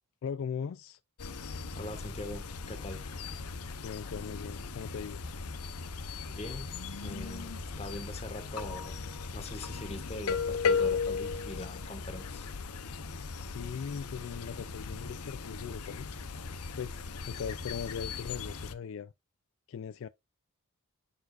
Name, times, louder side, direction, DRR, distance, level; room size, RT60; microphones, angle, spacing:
voice 1, 0.2-1.0 3.8-5.2 13.4-16.1 16.7-19.1 19.7-20.1, left 7 dB, 60° left, 0.3 m, -39 dB
sound 1, 1.2-18.7, left 5 dB, 85° left, 0.8 m, -37 dB
voice 2, 1.7-3.0 6.3-6.7 7.0-9.0 9.3-12.5, left 1 dB, 30° left, 1.6 m, -42 dB
10.5 x 4.7 x 2.5 m
head